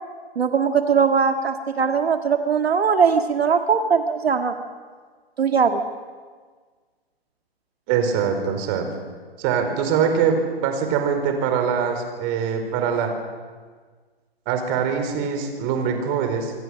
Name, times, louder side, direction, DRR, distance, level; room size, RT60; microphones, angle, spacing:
voice 1, 0.4-4.5 5.4-5.8, right 6 dB, 85° right, 6 dB, 1.9 m, -20 dB
voice 2, 7.9-8.9 9.4-13.1 14.5-16.5, right 7 dB, 30° right, 5 dB, 4.6 m, -23 dB
27.0 x 23.5 x 6.4 m, 1.5 s
hypercardioid pair, 140°, 30 cm